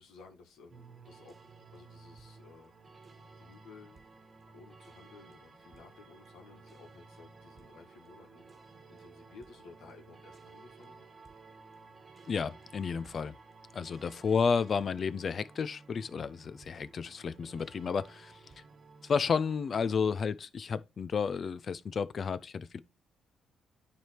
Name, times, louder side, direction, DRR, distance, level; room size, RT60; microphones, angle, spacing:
voice 1, 0.0-1.4 1.7-2.7 3.2-4.0 4.5-8.5 8.9-11.0, left 4 dB, 85° left, 1.9 m, -55 dB
sound 1, 0.7-19.9, right 4 dB, 35° right, 1.3 m, -55 dB
voice 2, 12.3-13.3 13.7-18.4 19.0-22.8, left 6 dB, 45° left, 0.5 m, -32 dB
9.4 x 3.5 x 4.6 m
cardioid pair, 90°, 0 cm